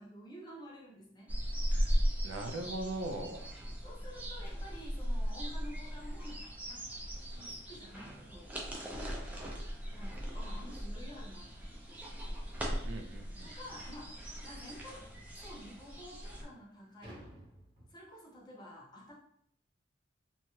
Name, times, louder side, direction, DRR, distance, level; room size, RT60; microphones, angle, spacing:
voice 1, 0.0-1.3 3.1-3.3 3.8-6.8 7.3-8.5 9.9-11.8 13.4-17.3 17.9-19.1, equal, 20° left, -3 dB, 0.7 m, -51 dB
sound 1, 1.3-16.4, equal, 10° right, 0.4 m, -38 dB
sound 2, 1.8-4.9 7.7-7.8 8.3-8.5 8.8-8.9 9.4-9.5 10.6-10.7 11.1-11.3 11.9-12.0 12.4-12.5 13.0-13.1 14.5-14.8 15.5-15.6 16.1-18.4, right 1 dB, 25° right, 0.9 m, -58 dB
voice 2, 2.2-3.4 12.8-13.5, right 2 dB, 90° right, 5 dB, 0.4 m, -40 dB
2.7 x 2.3 x 3.0 m, 0.67 s
head